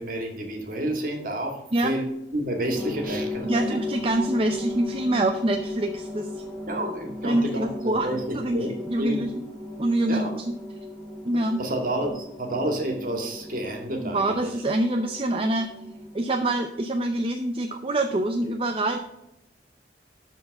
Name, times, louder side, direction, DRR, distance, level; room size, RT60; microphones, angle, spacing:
voice 1, 0.0-3.6 6.7-9.3 10.1-10.3 11.6-14.5, right 1 dB, 50° right, 3 dB, 2.2 m, -30 dB
sound 1, 2.7-16.5, left 1 dB, 15° left, 2.5 m, -36 dB
voice 2, 3.4-6.3 7.2-8.1 8.3-9.3 9.8-10.5 11.2-11.6 14.0-15.7 16.1-19.0, right 1 dB, 30° right, 5 dB, 0.6 m, -25 dB
12.5 x 4.6 x 5.3 m, 0.90 s
head